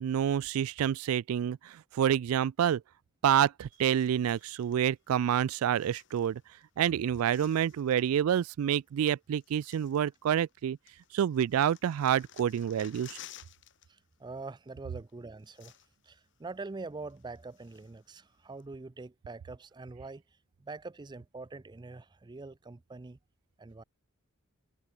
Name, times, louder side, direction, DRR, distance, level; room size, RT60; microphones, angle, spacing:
voice 1, 0.0-2.8 3.2-6.4 6.8-10.8 11.1-13.2, right 9 dB, 90° right, 0.3 m, -28 dB
sound 1, 3.7-4.8 5.6-6.6 6.9-8.1 9.0-9.1 9.4-10.6 10.9-13.9 14.1-14.3 15.1-15.2 15.4-16.1 16.5-16.6 17.1-18.1 18.6-18.7, left 11 dB, 60° left, 2.2 m, -55 dB
voice 2, 13.9-15.7 16.0-20.2 20.6-23.2 23.6-23.8, right 3 dB, 20° right, 0.4 m, -44 dB
head